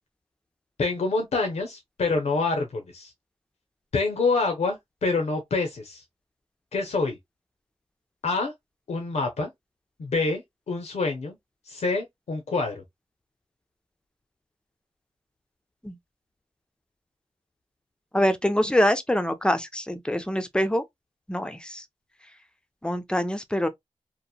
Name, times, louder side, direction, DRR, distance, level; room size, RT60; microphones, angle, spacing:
voice 1, 0.8-3.1 3.9-6.0 6.7-7.2 8.2-8.5 8.9-9.5 10.0-11.4 11.7-12.8, left 3 dB, 80° left, 0.6 m, -26 dB
voice 2, 18.1-20.8 21.3-21.8 22.8-23.7, equal, 10° left, 0.4 m, -24 dB
2.8 x 2.1 x 2.3 m
wide cardioid pair, 95°, 11 cm